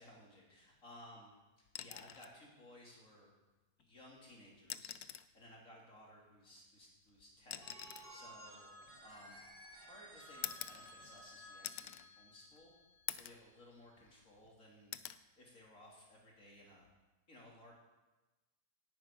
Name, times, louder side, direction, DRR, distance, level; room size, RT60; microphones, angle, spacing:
voice 1, 0.0-1.3 1.8-3.3 3.9-5.0 5.3-8.7 9.0-9.4 9.8-12.7 13.1-14.9 15.4-16.9 17.3-17.8, left 1 dB, 60° left, -3 dB, 3.6 m, -59 dB
sound 1, 1.7-2.4 3.8-3.9 4.6-5.4 6.5-9.6 10.4-11.3 11.6-12.1 12.5-12.6 13.1-13.5 13.9-14.5 14.9-15.2 16.7-16.9, left 11 dB, 90° left, 1.2 m, -47 dB
Telephone, 7.6-13.4, equal, 35° right, 5.2 m, -56 dB
11.0 x 8.8 x 9.1 m, 1.1 s
omnidirectional pair, 1.6 m